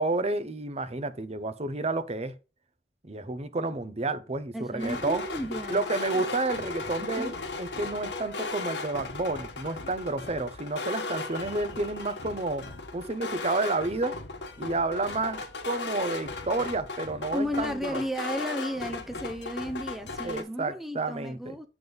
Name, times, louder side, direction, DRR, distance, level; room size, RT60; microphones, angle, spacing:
voice 1, 0.0-2.3 3.0-5.2 5.7-12.6 12.9-14.2 14.6-18.0 20.2-21.6, right 2 dB, 35° right, 0.8 m, -30 dB
voice 2, 4.5-5.8 6.1-6.2 7.2-7.3 17.3-21.7, equal, ahead, 0.6 m, -33 dB
sound 1, 4.8-20.4, left 3 dB, 85° left, 1.4 m, -36 dB
7.9 x 3.7 x 5.3 m
head